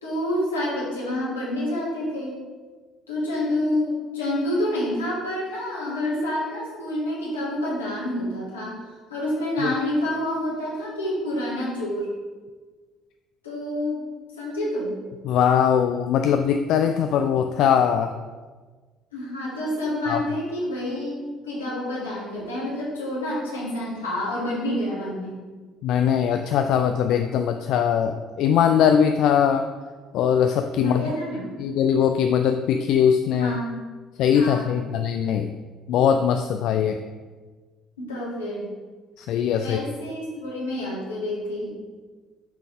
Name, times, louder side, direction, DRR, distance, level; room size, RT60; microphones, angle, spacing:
voice 1, 0.0-2.4 3.1-8.8 9.1-12.1 13.4-15.0 19.1-25.4 30.8-31.5 33.4-33.8 34.3-34.8 38.0-38.7 39.6-41.8, left 1 dB, 80° left, -5 dB, 1.8 m, -28 dB
voice 2, 15.2-18.1 20.1-20.2 25.8-29.7 30.1-31.0 31.6-33.6 34.2-35.5 35.9-37.0 39.2-39.8, left 8 dB, 60° left, 6 dB, 0.3 m, -21 dB
7.3 x 5.7 x 3.6 m, 1.4 s
figure-of-eight pair, 50°, 0 cm